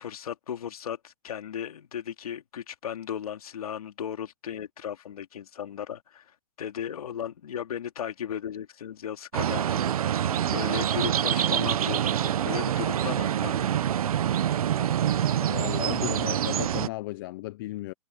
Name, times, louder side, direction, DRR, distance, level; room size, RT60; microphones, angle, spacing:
voice 1, 0.0-13.7, left 9 dB, 75° left, 2.6 m, -36 dB
sound 1, 9.3-16.9, right 10 dB, 70° right, 1.0 m, -26 dB
sound 2, 10.2-15.8, left 4 dB, 5° left, 5.3 m, -50 dB
voice 2, 15.5-17.9, left 18 dB, 40° left, 0.8 m, -34 dB
hypercardioid pair, 150°, 19 cm